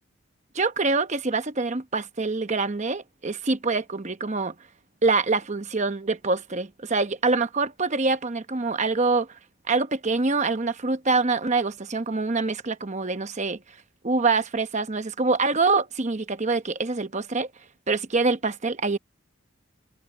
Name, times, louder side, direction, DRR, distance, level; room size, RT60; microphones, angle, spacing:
voice 1, 0.5-4.5 5.0-9.4 9.7-13.8 14.0-17.5 17.9-19.0, right 3 dB, 35° right, 0.9 m, -25 dB
head